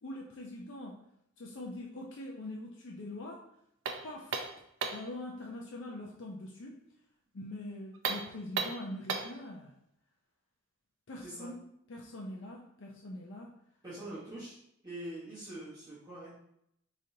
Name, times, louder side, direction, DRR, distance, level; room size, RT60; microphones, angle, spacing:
voice 1, 0.0-1.0 1.4-3.4 4.0-4.4 4.9-6.8 7.3-9.7 11.1-11.6 11.9-13.6, left 1 dB, 65° left, -1 dB, 0.5 m, -43 dB
sound 1, 3.8-5.1 7.9-9.4, right 5 dB, 70° right, 0.5 m, -35 dB
voice 2, 11.2-11.5 13.8-14.6 14.8-16.3, right 1 dB, 20° right, -10 dB, 1.3 m, -44 dB
4.9 x 3.9 x 2.8 m, 0.75 s
head